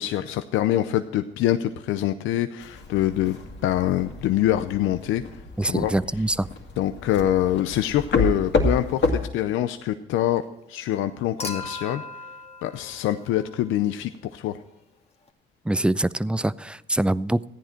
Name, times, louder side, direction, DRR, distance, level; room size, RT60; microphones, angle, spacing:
voice 1, 0.0-3.4 3.6-5.2 5.6-5.9 6.8-10.4 10.7-12.0 12.6-14.6, left 12 dB, 90° left, 9 dB, 0.6 m, -25 dB
sound 1, 2.6-9.3, left 3 dB, 60° left, 2.3 m, -29 dB
voice 2, 5.6-6.5 15.7-17.5, right 1 dB, 5° right, 18 dB, 0.4 m, -24 dB
Human group actions / Chink clink / Liquid, 11.4-13.8 15.3-15.4, left 2 dB, 30° left, 1.6 m, -38 dB
14.5 x 10.0 x 4.4 m, 0.92 s
cardioid pair, 90°, 20 cm